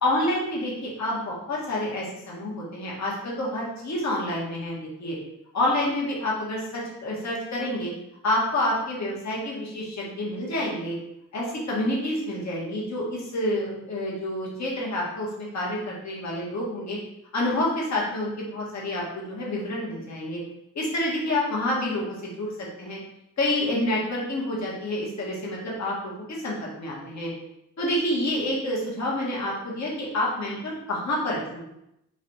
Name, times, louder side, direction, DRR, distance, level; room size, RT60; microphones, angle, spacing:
voice 1, 0.0-5.1 5.5-7.9 8.2-10.9 11.3-17.0 17.3-20.4 20.7-23.0 23.4-27.3 27.8-31.6, left 1 dB, 55° left, -5 dB, 1.5 m, -28 dB
3.9 x 2.6 x 4.4 m, 0.84 s
cardioid pair, 60°, 32 cm